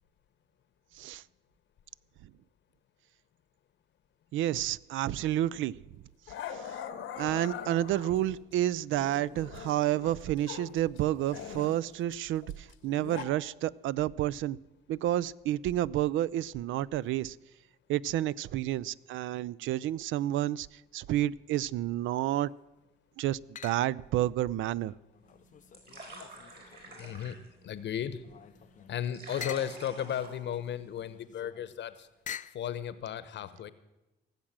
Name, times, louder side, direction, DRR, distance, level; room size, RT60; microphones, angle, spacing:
voice 1, 4.3-5.7 6.5-6.6 7.2-14.6 14.9-17.4 17.9-22.5 23.2-24.9, right 13 dB, 80° right, 20 dB, 0.4 m, -30 dB
Growling, 5.3-5.5 6.3-8.4 8.9-10.7 11.0-13.2, left 8 dB, 85° left, 1.2 m, -42 dB
sound 1, 22.0-22.6 23.5-24.1 24.6-27.3 27.8-32.7, left 9 dB, 40° left, 0.4 m, -48 dB
sound 2, 25.2-31.1, right 2 dB, 55° right, 4.8 m, -50 dB
voice 2, 26.2-27.4 27.6-28.2 28.9-32.1 32.5-33.7, left 9 dB, 65° left, 14 dB, 0.9 m, -35 dB
17.5 x 7.4 x 7.4 m, 1.0 s
cardioid pair, 90°, 20 cm